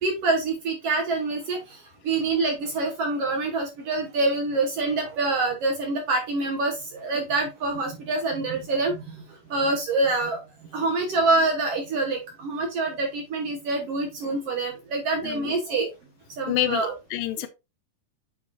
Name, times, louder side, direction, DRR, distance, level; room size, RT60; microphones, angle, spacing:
voice 1, 0.0-10.4 10.7-15.9 16.4-16.9 17.4-17.5, right 3 dB, 65° right, 1.7 m, -26 dB
voice 2, 15.2-15.5 16.5-17.5, left 13 dB, 85° left, 2.5 m, -28 dB
8.4 x 5.1 x 2.9 m
omnidirectional pair, 3.9 m